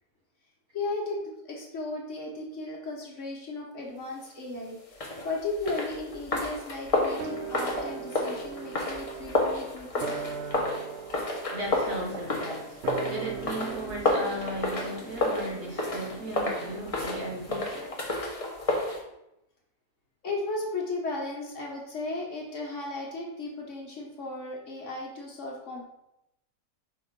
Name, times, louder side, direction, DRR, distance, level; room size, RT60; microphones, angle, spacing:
voice 1, 0.7-10.2 11.4-11.5 20.2-25.8, left 2 dB, 50° left, -2 dB, 1.4 m, -35 dB
sound 1, 4.9-19.0, left 2 dB, 25° left, 0.9 m, -31 dB
sound 2, 7.2-17.8 18.1-18.2, right 7 dB, 75° right, 0.6 m, -41 dB
voice 2, 11.5-18.0, equal, 60° right, -2 dB, 1.6 m, -36 dB
5.3 x 3.8 x 5.1 m, 0.86 s
omnidirectional pair, 1.8 m